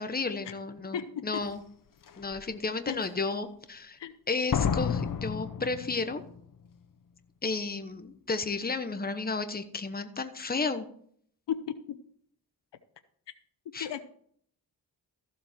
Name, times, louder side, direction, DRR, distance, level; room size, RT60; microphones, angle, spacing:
voice 1, 0.0-1.6 2.2-4.0 4.3-6.2 7.4-10.9 13.7-13.9, left 4 dB, 20° left, 9 dB, 1.1 m, -32 dB
voice 2, 0.9-1.4 2.9-3.0 4.0-4.1 11.5-12.0 13.8-14.0, left 9 dB, 85° left, 11 dB, 0.9 m, -34 dB
Slam, 1.4-1.5 2.1-2.4 4.5-6.4 6.7-6.8, left 7 dB, 50° left, 0.8 m, -31 dB
14.5 x 7.5 x 4.4 m, 0.62 s
cardioid pair, 80°, 41 cm